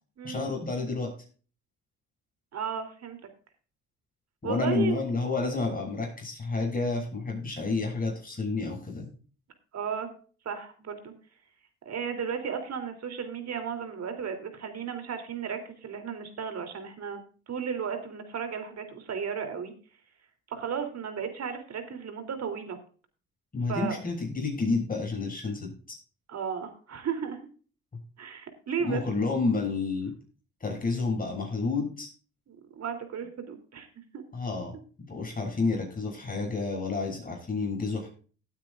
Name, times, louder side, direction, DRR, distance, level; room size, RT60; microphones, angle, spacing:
voice 1, 0.2-1.1 4.4-9.1 23.5-26.0 27.9-28.0 28.8-30.1 30.6-32.1 34.3-38.1, left 3 dB, 30° left, 0 dB, 7.1 m, -30 dB
voice 2, 2.5-3.2 4.4-5.2 9.7-10.1 10.4-11.1 11.8-17.2 17.5-19.7 20.5-22.8 23.7-24.0 26.3-27.4 28.2-29.0 32.5-33.9 34.1-34.2, right 7 dB, 60° right, 7 dB, 3.3 m, -34 dB
18.0 x 9.3 x 2.5 m, 0.39 s
cardioid pair, 90°, 30 cm